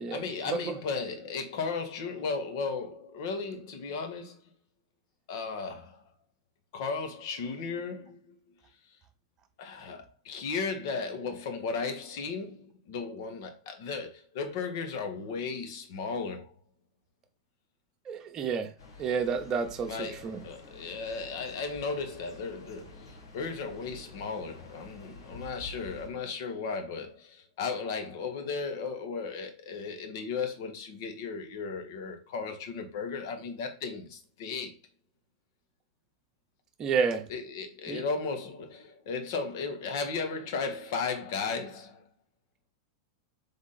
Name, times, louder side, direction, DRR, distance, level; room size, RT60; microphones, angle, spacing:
voice 1, 0.1-4.4 5.3-6.0 6.7-8.3 9.6-16.5 19.9-34.7 37.3-42.0, left 4 dB, 60° left, 1.1 m, -35 dB
voice 2, 18.1-18.7 19.0-20.4 36.8-37.2 37.9-38.0, right 6 dB, 35° right, 0.9 m, -30 dB
sound 1, 18.8-26.1, left 3 dB, 85° left, 1.5 m, -49 dB
3.6 x 3.5 x 4.2 m
hypercardioid pair, 100°, 2 cm